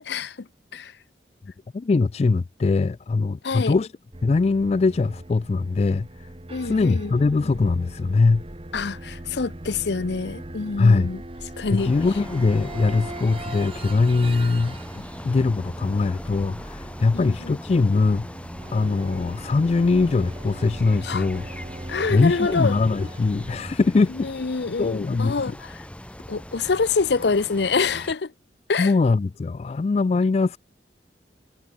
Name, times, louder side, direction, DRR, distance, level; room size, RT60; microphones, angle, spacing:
voice 1, 0.1-0.5 0.7-0.9 3.4-3.7 6.5-7.1 8.7-11.2 11.6-11.9 17.1-17.6 21.0-21.3 21.9-22.8 24.2-25.8 26.3-28.3 28.7-28.9, left 4 dB, 75° left, 0.7 m, -26 dB
voice 2, 1.7-3.9 4.2-6.1 6.6-8.4 10.8-11.1 11.7-14.8 15.2-18.3 18.7-21.4 22.1-24.3 24.8-25.6 28.8-30.6, left 3 dB, 35° left, 0.3 m, -21 dB
sound 1, 4.1-23.8, right 1 dB, 30° right, 1.3 m, -39 dB
sound 2, 11.8-28.1, equal, 5° left, 2.1 m, -41 dB
head